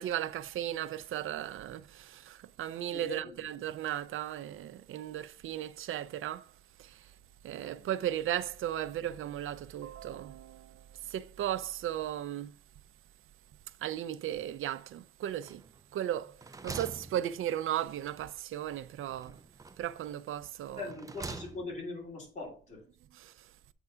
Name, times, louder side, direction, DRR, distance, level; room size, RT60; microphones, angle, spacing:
voice 1, 0.0-6.5 6.8-7.1 7.4-12.5 13.8-15.6 15.9-19.4 19.8-20.9 23.1-23.3, right 11 dB, 75° right, 0.5 m, -36 dB
voice 2, 2.9-3.4 7.6-7.8 20.7-22.8, left 2 dB, 35° left, 3.2 m, -41 dB
sound 1, 15.4-15.9 16.2-17.8 19.1-20.0 20.7-21.9, right 3 dB, 15° right, 0.5 m, -45 dB
8.0 x 3.6 x 5.5 m
cardioid pair, 125°, 21 cm